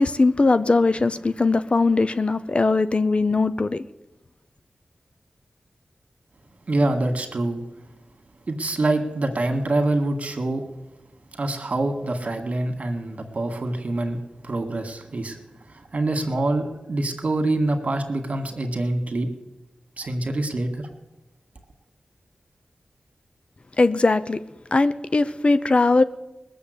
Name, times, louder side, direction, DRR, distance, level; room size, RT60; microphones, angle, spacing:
voice 1, 0.0-3.8 23.8-24.4 24.7-26.0, left 3 dB, 45° left, 0.7 m, -20 dB
voice 2, 6.7-7.6 8.5-10.6 11.3-14.2 14.4-15.4 15.7-19.3 20.0-20.9, right 2 dB, 60° right, 2.1 m, -25 dB
19.5 x 7.1 x 8.2 m
cardioid pair, 45°, 3 cm